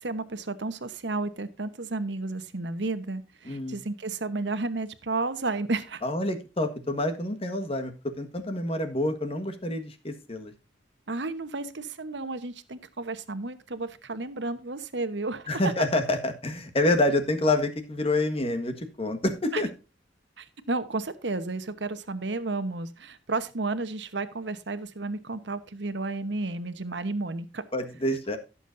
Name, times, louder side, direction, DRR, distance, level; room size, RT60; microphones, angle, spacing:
voice 1, 0.0-6.0 11.1-15.5 19.5-19.6 20.4-27.6, right 3 dB, 70° right, 11 dB, 1.1 m, -32 dB
voice 2, 3.4-3.8 6.0-10.5 15.5-19.7 27.7-28.4, left 1 dB, 30° left, 8 dB, 1.6 m, -27 dB
17.0 x 7.2 x 2.6 m, 0.29 s
head